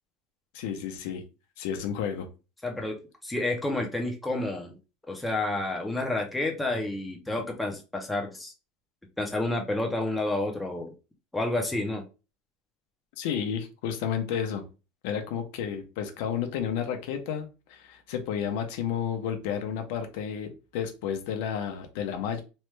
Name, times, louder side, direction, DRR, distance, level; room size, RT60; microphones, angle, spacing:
voice 1, 0.5-1.2 1.6-2.3 13.2-14.7 15.0-22.4, left 8 dB, 65° left, 0.6 m, -31 dB
voice 2, 2.6-3.0 3.2-4.8 5.1-8.5 9.2-10.9 11.3-12.0, left 2 dB, 5° left, 0.5 m, -29 dB
3.1 x 2.1 x 3.1 m
supercardioid pair, 165°, 0 cm